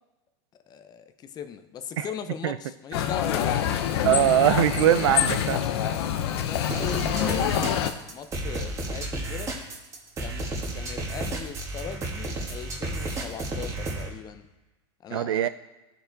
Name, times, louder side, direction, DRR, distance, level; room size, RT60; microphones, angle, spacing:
voice 1, 0.7-3.7 5.9-9.5 10.2-14.5 15.0-15.5, left 8 dB, 30° left, 10 dB, 0.6 m, -38 dB
sound 1, 2.9-7.9, left 9 dB, 70° left, 0.7 m, -26 dB
voice 2, 4.0-5.6 15.1-15.5, right 12 dB, 85° right, 14 dB, 0.4 m, -21 dB
sound 2, 6.7-14.1, right 2 dB, 20° right, 1.4 m, -32 dB
12.5 x 4.7 x 3.9 m, 1.1 s
supercardioid pair, 120°, 14 cm